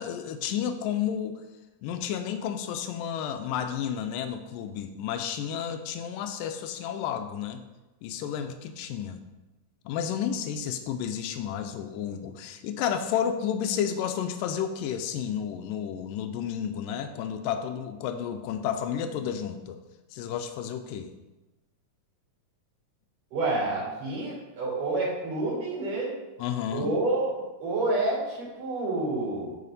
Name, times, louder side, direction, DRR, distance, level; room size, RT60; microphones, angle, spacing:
voice 1, 0.0-1.4 1.8-7.6 8.0-9.2 9.9-19.8 20.1-21.1 26.4-26.9, left 8 dB, 90° left, 7 dB, 2.3 m, -31 dB
voice 2, 23.3-26.2 26.7-29.5, right 2 dB, 75° right, -5 dB, 4.3 m, -29 dB
9.3 x 5.6 x 4.1 m, 1.1 s
omnidirectional pair, 3.8 m